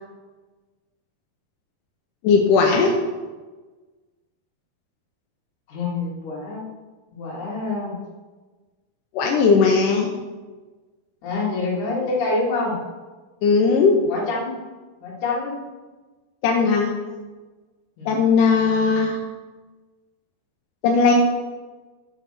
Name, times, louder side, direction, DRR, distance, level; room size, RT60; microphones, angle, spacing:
voice 1, 2.2-2.9 9.1-10.1 13.4-14.0 16.4-16.9 18.1-19.2 20.8-21.1, left 5 dB, 75° left, 0 dB, 2.1 m, -17 dB
voice 2, 5.7-6.6 7.1-8.0 11.2-12.7 14.0-14.6 15.0-15.6 18.0-18.2, left 3 dB, 55° left, -5 dB, 3.5 m, -26 dB
7.8 x 6.4 x 5.9 m, 1.3 s
omnidirectional pair, 4.3 m